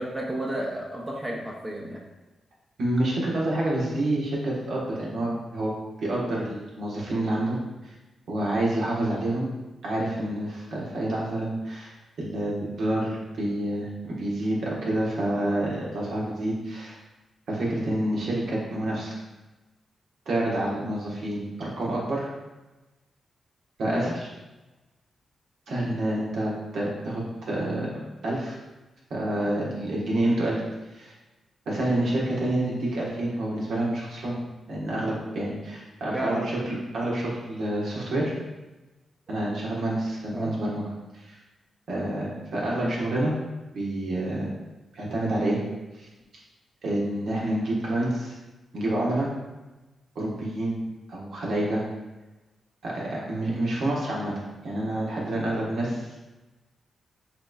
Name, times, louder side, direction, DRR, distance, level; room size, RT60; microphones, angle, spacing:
voice 1, 0.0-2.0 20.8-20.9 23.9-24.1 25.8-26.0 36.1-36.5 40.3-40.5 42.8-42.9, equal, 20° right, -2 dB, 0.7 m, -32 dB
voice 2, 2.8-5.7 6.0-7.6 7.8-7.9 8.3-9.5 9.8-17.0 17.5-19.1 20.2-22.3 23.8-24.3 25.7-27.9 28.2-28.6 29.1-30.6 30.9-31.1 31.7-34.4 34.7-38.3 39.3-40.8 41.2-41.4 41.9-43.3 43.7-44.5 44.9-45.6 46.0-46.1 46.8-48.3 48.7-49.3 50.1-50.7 51.1-51.8 52.8-54.3 54.6-56.2, right 1 dB, 75° right, -5 dB, 1.4 m, -28 dB
5.8 x 3.1 x 2.4 m, 1.1 s
cardioid pair, 65°, 0 cm